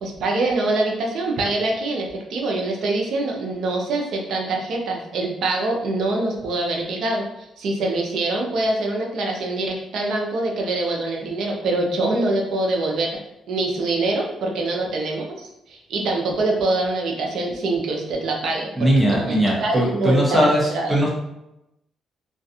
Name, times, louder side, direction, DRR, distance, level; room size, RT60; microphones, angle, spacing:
voice 1, 0.0-13.1 13.5-18.9 19.3-20.9, right 2 dB, 70° right, 0 dB, 0.6 m, -24 dB
voice 2, 18.8-21.1, right 1 dB, 10° right, -4 dB, 0.8 m, -19 dB
2.4 x 2.3 x 2.7 m, 0.87 s
cardioid pair, 90°, 0 cm